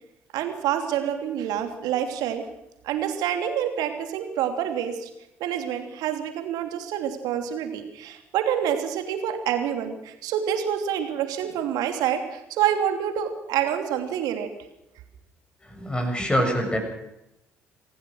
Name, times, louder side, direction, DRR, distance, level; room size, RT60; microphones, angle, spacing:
voice 1, 0.3-2.4 2.8-5.1 5.4-14.5, right 9 dB, 60° right, 6 dB, 3.1 m, -27 dB
voice 2, 15.6-16.8, equal, 10° left, 3 dB, 7.1 m, -25 dB
25.5 x 16.5 x 6.4 m, 0.88 s
figure-of-eight pair, 50°, 7 cm